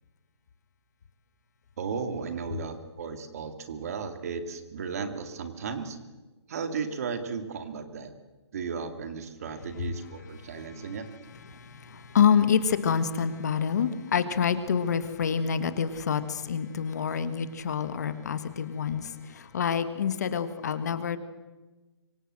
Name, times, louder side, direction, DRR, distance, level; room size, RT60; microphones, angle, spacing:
voice 1, 1.8-6.0 6.5-8.1 8.5-11.1, right 5 dB, 35° right, 8 dB, 2.5 m, -35 dB
voice 2, 10.4-21.2, left 7 dB, 40° left, 11 dB, 1.6 m, -27 dB
25.5 x 25.0 x 7.8 m, 1.2 s
hypercardioid pair, 175°, 14 cm